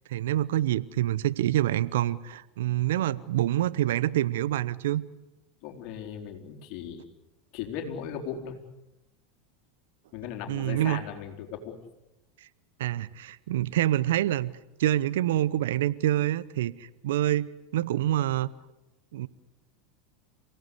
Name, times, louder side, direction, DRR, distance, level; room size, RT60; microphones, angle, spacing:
voice 1, 0.1-5.0 10.5-11.0 12.8-14.5 14.8-17.5 17.7-18.5 19.1-19.3, right 13 dB, 70° right, 18 dB, 0.8 m, -26 dB
voice 2, 5.6-7.0 7.5-8.6 10.1-11.8, left 8 dB, 55° left, 3 dB, 4.3 m, -37 dB
28.5 x 17.5 x 8.4 m, 0.99 s
hypercardioid pair, 85°, 0 cm